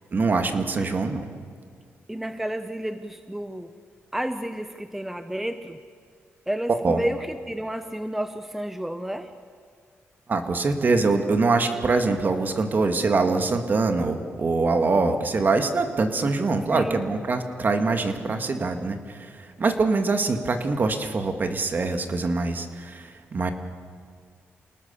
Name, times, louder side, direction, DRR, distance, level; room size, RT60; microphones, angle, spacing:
voice 1, 0.1-1.3 6.8-7.0 10.3-23.5, right 3 dB, 40° right, 7 dB, 2.2 m, -24 dB
voice 2, 2.1-3.7 4.1-5.8 6.5-9.3 16.7-17.0, right 1 dB, 5° right, 9 dB, 0.9 m, -31 dB
29.0 x 18.5 x 7.1 m, 2.1 s
cardioid pair, 110°, 5 cm